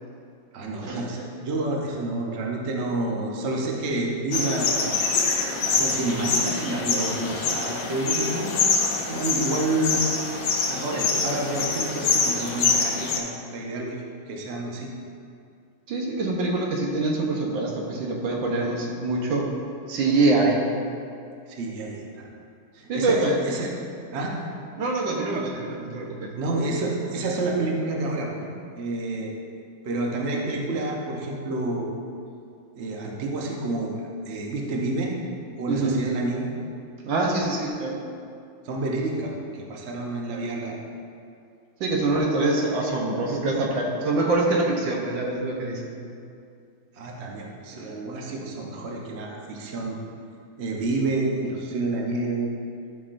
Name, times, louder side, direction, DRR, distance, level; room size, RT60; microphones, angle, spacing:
voice 1, 0.5-5.0 5.6-8.8 9.1-10.1 10.4-14.9 21.5-22.3 22.7-23.7 24.1-24.3 26.4-28.5 28.7-29.3 29.8-31.9 32.8-35.2 35.6-36.5 38.6-40.8 46.9-50.0 50.6-52.5, right 2 dB, 50° right, -1 dB, 0.8 m, -29 dB
sound 1, 4.3-13.2, left 4 dB, 75° left, 1.6 m, -25 dB
voice 2, 15.9-19.5 19.9-20.6 22.9-23.4 24.8-26.3 35.7-36.0 37.0-38.0 41.8-45.9, right 2 dB, 70° right, -1 dB, 1.7 m, -24 dB
12.0 x 6.0 x 2.6 m, 2.4 s
omnidirectional pair, 2.2 m